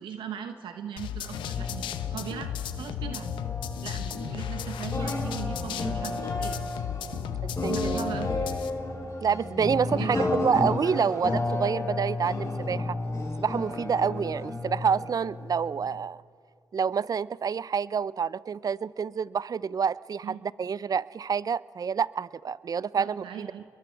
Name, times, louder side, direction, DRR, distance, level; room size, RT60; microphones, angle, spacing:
voice 1, 0.0-3.3 3.8-6.1 6.4-6.6 7.1-7.2 7.7-8.5 10.0-10.6 11.0-11.1 20.2-20.4 22.8-23.6, right 8 dB, 80° right, 6 dB, 1.1 m, -39 dB
sound 1, 1.0-8.7, left 10 dB, 85° left, 0.8 m, -35 dB
sound 2, 1.3-16.0, left 2 dB, 40° left, 4.0 m, -32 dB
voice 2, 7.4-8.0 9.2-13.0 13.4-16.2 16.7-23.5, right 6 dB, 50° right, 20 dB, 0.5 m, -28 dB
29.0 x 22.0 x 4.6 m, 2.3 s
supercardioid pair, 45°, 8 cm